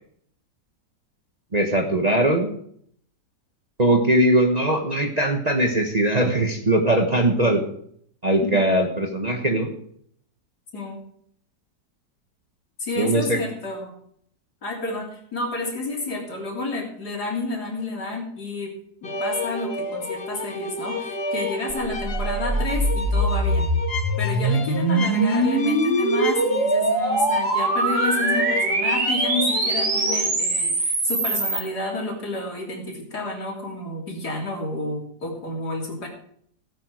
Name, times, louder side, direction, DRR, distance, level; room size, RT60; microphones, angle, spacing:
voice 1, 1.5-2.5 3.8-7.6 8.2-9.7 13.0-13.4, right 1 dB, 25° right, 3 dB, 1.3 m, -20 dB
voice 2, 12.8-13.9 14.6-18.7 19.0-23.7 24.2-36.1, left 2 dB, 65° left, 0 dB, 3.8 m, -30 dB
sound 1, 19.0-30.3, left 2 dB, 40° left, 1.3 m, -31 dB
sound 2, 21.7-31.6, right 2 dB, 45° right, 2.5 m, -23 dB
16.5 x 9.4 x 4.8 m, 0.65 s
omnidirectional pair, 1.8 m